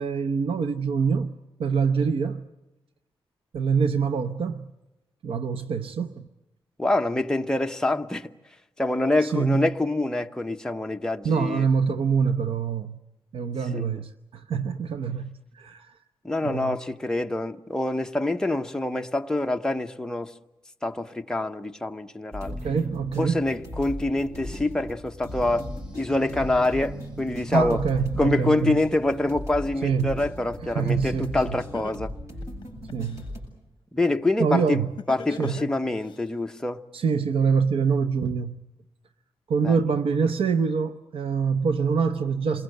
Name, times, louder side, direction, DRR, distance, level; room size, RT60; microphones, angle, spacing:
voice 1, 0.0-1.3 1.6-2.5 3.5-4.7 5.2-6.2 9.2-9.7 11.2-13.0 13.3-15.2 15.5-15.9 16.4-16.8 22.5-23.4 27.5-28.8 29.8-30.1 30.6-31.6 32.9-33.2 34.4-34.9 35.4-35.6 36.9-38.6 39.5-42.6, right 6 dB, 85° right, 0.9 m, -25 dB
voice 2, 6.8-8.3 8.8-11.7 13.7-14.0 16.2-20.3 20.8-22.6 23.2-25.7 25.9-27.8 28.2-32.1 33.9-34.8 35.1-36.8 39.6-39.9, left 2 dB, 5° left, 0.9 m, -26 dB
sound 1, 22.3-33.4, left 1 dB, 35° right, 7.8 m, -38 dB
sound 2, 25.3-30.8, right 2 dB, 10° right, 1.6 m, -43 dB
Laughter, 31.7-33.2 35.0-36.2, left 5 dB, 55° left, 0.8 m, -38 dB
28.0 x 22.0 x 7.9 m
wide cardioid pair, 170°, 9 cm